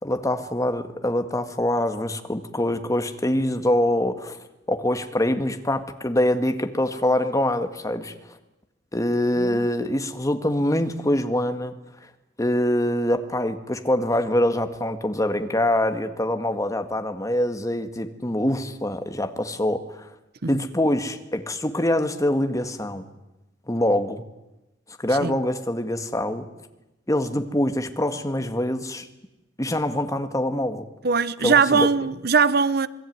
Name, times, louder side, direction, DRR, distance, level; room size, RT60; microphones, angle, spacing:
voice 1, 0.0-4.4 4.7-8.1 8.9-11.7 12.4-20.1 20.5-23.1 23.7-24.2 25.0-26.5 27.1-29.1 29.6-30.9 31.4-31.9, left 1 dB, 20° left, 1.8 m, -24 dB
voice 2, 31.0-32.9, right 5 dB, 60° right, 1.0 m, -21 dB
27.0 x 20.5 x 9.4 m
head